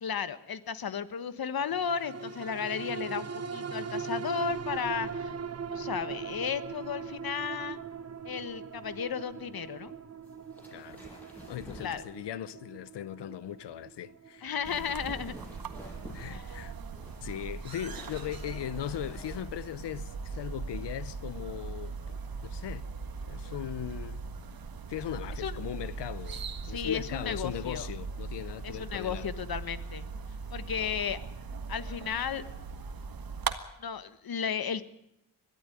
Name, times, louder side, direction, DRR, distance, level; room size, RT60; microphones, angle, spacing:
voice 1, 0.0-5.3 5.7-7.8 8.2-9.9 11.8-12.0 14.4-15.3 16.3-16.6 25.4-25.6 26.7-27.9 28.6-30.0 30.5-31.2 31.7-32.4 33.8-35.0, left 7 dB, 60° left, 1.3 m, -34 dB
sound 1, 1.6-16.3 16.7-16.8, right 5 dB, 40° right, 1.2 m, -40 dB
sound 2, 10.2-12.3 14.5-19.4, equal, 5° left, 7.5 m, -49 dB
voice 2, 10.7-11.0 11.5-14.5 16.1-16.8 17.2-22.0 22.4-22.9 23.3-24.2 24.9-29.3, left 11 dB, 90° left, 0.9 m, -38 dB
sound 3, 14.6-33.5, right 5 dB, 60° right, 1.6 m, -39 dB
21.5 x 13.0 x 9.9 m
cardioid pair, 80°, 40 cm